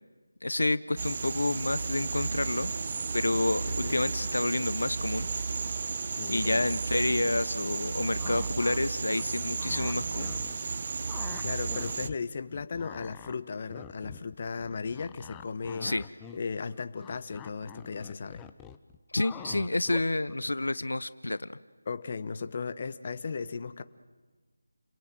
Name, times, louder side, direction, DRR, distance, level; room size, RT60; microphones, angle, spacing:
voice 1, 0.4-2.7 3.1-5.3 6.3-10.3 15.8-16.0 19.1-21.6, left 2 dB, 75° left, 16 dB, 0.9 m, -29 dB
sound 1, 1.0-12.1, right 4 dB, 40° right, 0.9 m, -33 dB
voice 2, 3.7-4.0 6.2-6.7 11.0-15.9 16.3-18.4 21.9-23.8, left 5 dB, 40° left, 12 dB, 1.2 m, -36 dB
sound 2, 8.0-8.8 9.1-10.8 11.1-12.2 12.5-20.3, left 10 dB, 10° left, 0.8 m, -46 dB
30.0 x 21.5 x 9.2 m, 1.3 s
figure-of-eight pair, 165°, 0 cm